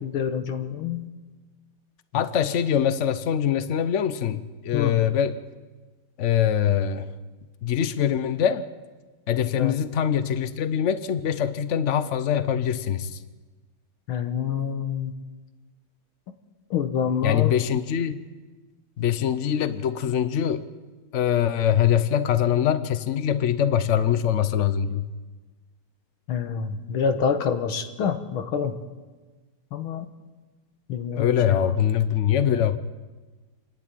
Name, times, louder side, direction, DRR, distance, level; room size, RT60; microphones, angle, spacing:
voice 1, 0.0-1.0 2.1-2.2 4.7-4.9 9.6-9.7 14.1-15.1 16.7-17.5 26.3-28.8 29.7-30.1 30.9-31.7, left 7 dB, 75° left, 7 dB, 2.0 m, -27 dB
voice 2, 2.1-5.4 6.2-7.1 7.6-8.7 9.3-13.2 17.2-18.2 19.0-20.7 21.1-25.1 31.2-32.8, left 9 dB, 90° left, 12 dB, 0.6 m, -23 dB
28.0 x 11.0 x 9.1 m, 1.3 s
omnidirectional pair, 2.4 m